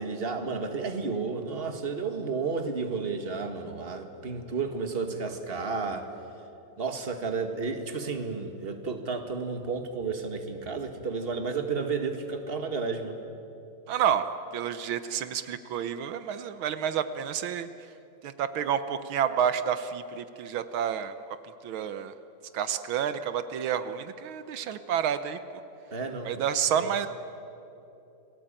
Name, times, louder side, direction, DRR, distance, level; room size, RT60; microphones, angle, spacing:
voice 1, 0.0-6.1 6.8-13.2 25.9-26.9, right 4 dB, 30° right, 6 dB, 2.0 m, -32 dB
voice 2, 13.9-14.2 14.5-17.7 18.2-21.1 21.6-22.1 22.5-25.4 26.2-27.1, right 8 dB, 80° right, 11 dB, 1.7 m, -29 dB
28.5 x 19.0 x 8.9 m, 2.8 s
omnidirectional pair, 2.2 m